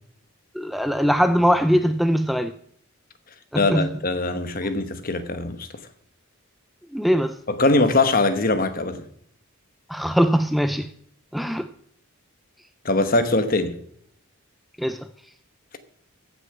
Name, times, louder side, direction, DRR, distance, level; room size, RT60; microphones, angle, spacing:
voice 1, 0.6-2.5 3.7-3.9 6.9-7.3 9.9-10.9 11.3-11.7 14.8-15.0, equal, ahead, 0.4 m, -21 dB
voice 2, 3.6-5.7 7.5-9.0 12.8-13.8, left 2 dB, 40° left, 1.1 m, -22 dB
15.0 x 6.5 x 5.9 m
head